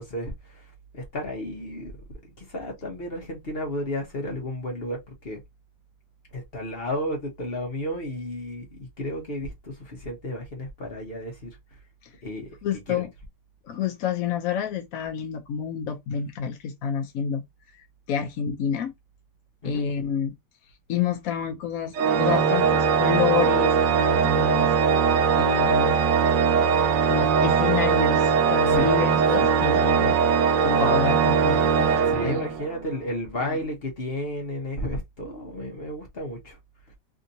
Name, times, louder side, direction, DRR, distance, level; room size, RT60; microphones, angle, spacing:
voice 1, 0.0-1.9 2.4-5.4 6.3-11.6 12.2-12.5 12.9-13.1 19.6-19.8 28.7-28.9 31.8-36.6, left 1 dB, 40° left, 1.0 m, -33 dB
voice 2, 12.6-13.1 13.7-17.4 18.1-18.9 19.6-20.4 20.9-25.1 25.4-26.0 27.0-32.4 33.4-33.6, left 8 dB, 65° left, 0.9 m, -29 dB
Organ, 21.9-32.8, right 6 dB, 85° right, 1.3 m, -21 dB
3.5 x 2.7 x 2.6 m
omnidirectional pair, 1.9 m